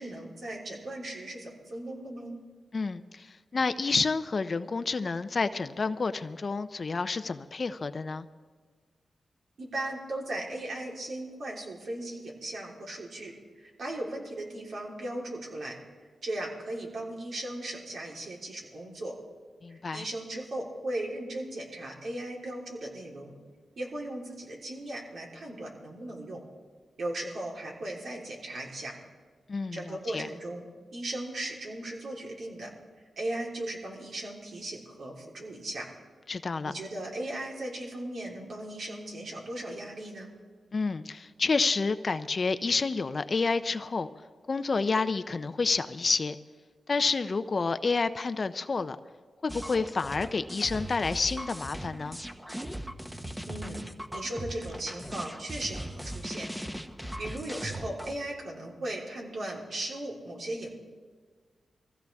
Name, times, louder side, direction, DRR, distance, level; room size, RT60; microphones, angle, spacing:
voice 1, 0.0-2.3 9.6-15.8 16.2-19.2 19.7-23.3 23.8-26.4 27.0-28.9 29.7-32.7 33.2-35.9 36.6-40.3 53.5-53.8 54.1-56.5 57.2-60.7, right 1 dB, 70° right, -2 dB, 3.8 m, -37 dB
voice 2, 2.7-8.3 19.6-20.1 29.5-30.3 36.3-36.7 40.7-44.1 44.5-46.3 46.9-49.0 49.4-52.2, left 4 dB, 50° left, 10 dB, 0.6 m, -29 dB
sound 1, 49.5-58.1, right 1 dB, 10° right, 1.1 m, -39 dB
23.5 x 15.5 x 3.6 m, 1.5 s
cardioid pair, 65°, 0 cm